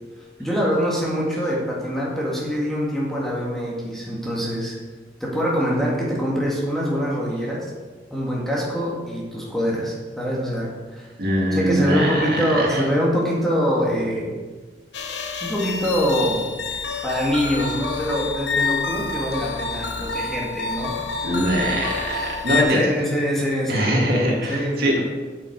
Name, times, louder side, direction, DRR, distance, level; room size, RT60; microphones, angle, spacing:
voice 1, 0.4-4.8 5.2-7.7 8.1-11.1 11.5-14.4 15.4-16.4 17.0-20.9 22.5-24.0 24.5-25.0, equal, ahead, -5 dB, 1.9 m, -24 dB
voice 2, 11.2-12.8 21.2-22.9 23.7-25.0, equal, 60° right, -2 dB, 2.2 m, -22 dB
sound 1, 14.9-22.6, left 4 dB, 85° left, 1.1 m, -28 dB
8.5 x 8.4 x 4.7 m, 1.3 s
head